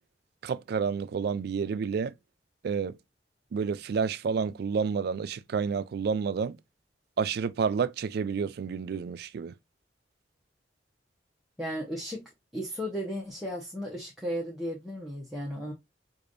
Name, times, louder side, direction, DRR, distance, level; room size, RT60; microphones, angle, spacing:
voice 1, 0.4-2.1 2.6-3.0 3.5-6.6 7.2-9.5, right 6 dB, 60° right, 0.3 m, -29 dB
voice 2, 11.6-12.2 12.5-15.7, equal, ahead, 0.8 m, -35 dB
4.9 x 2.5 x 2.5 m
head